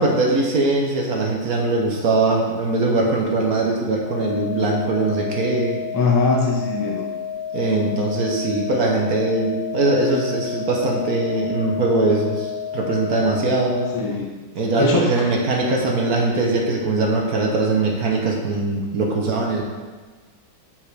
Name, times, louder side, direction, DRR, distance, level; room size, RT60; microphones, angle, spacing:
voice 1, 0.0-5.8 7.5-13.9 14.6-19.6, right 2 dB, 60° right, 0 dB, 1.3 m, -21 dB
sound 1, 4.0-14.0, left 8 dB, 65° left, 0.8 m, -31 dB
voice 2, 5.9-7.1 13.9-14.4 14.8-15.3, left 3 dB, 25° left, -1 dB, 0.4 m, -21 dB
7.4 x 5.6 x 3.3 m, 1.4 s
omnidirectional pair, 1.9 m